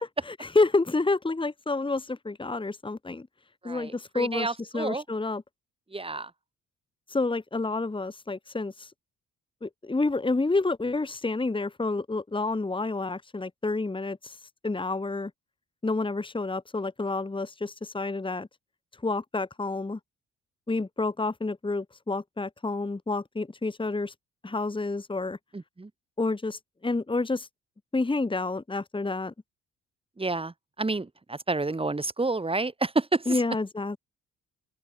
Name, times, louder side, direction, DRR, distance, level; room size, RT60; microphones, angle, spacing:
voice 1, 0.3-3.3 3.6-4.5 4.7-5.4 7.1-8.9 9.6-14.4 14.6-15.3 15.8-18.5 19.0-20.0 20.7-24.1 24.4-25.4 26.2-27.5 27.9-29.3 33.3-34.0, left 3 dB, 15° left, 2.3 m, -29 dB
voice 2, 3.6-5.0 5.9-6.3 25.5-25.9 30.2-33.4, right 3 dB, 20° right, 3.4 m, -30 dB
cardioid pair, 90°, 30 cm